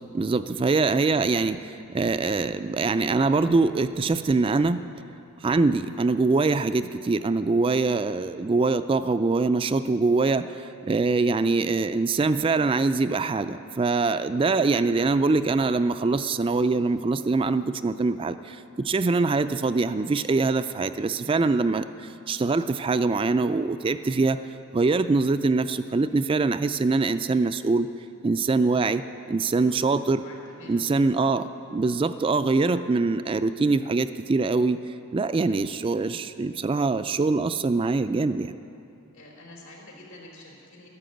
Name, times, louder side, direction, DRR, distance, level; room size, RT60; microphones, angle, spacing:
voice 1, 0.1-4.8 5.4-24.4 24.7-27.9 28.2-29.0 29.3-30.2 30.7-34.8 35.1-38.5, right 3 dB, 25° right, 11 dB, 0.3 m, -23 dB
voice 2, 30.2-30.8 31.6-31.8 39.1-40.9, left 1 dB, 85° left, -1 dB, 4.0 m, -47 dB
12.5 x 11.5 x 7.9 m, 2.7 s
head